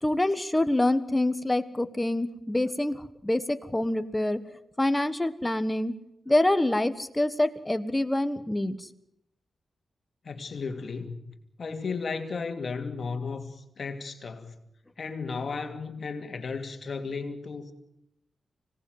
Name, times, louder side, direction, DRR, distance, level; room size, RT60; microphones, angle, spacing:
voice 1, 0.0-4.4 4.8-5.9 6.3-8.9, left 1 dB, 10° left, 11 dB, 1.4 m, -26 dB
voice 2, 10.2-11.2 11.6-14.6 15.0-17.7, left 4 dB, 55° left, 7 dB, 2.6 m, -34 dB
25.5 x 18.0 x 9.4 m, 0.80 s
wide cardioid pair, 110°, 0 cm